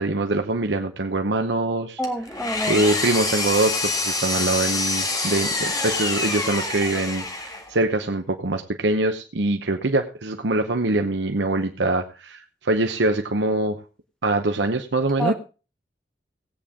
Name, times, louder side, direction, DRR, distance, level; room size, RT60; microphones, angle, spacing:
voice 1, 0.0-2.0 2.7-13.8 14.2-15.3, right 2 dB, 80° right, 0.9 m, -24 dB
Engine, 2.0-7.8, left 3 dB, 20° left, 1.7 m, -26 dB
voice 2, 2.0-2.9 15.2-15.3, equal, 5° left, 1.2 m, -27 dB
17.5 x 8.7 x 3.7 m
head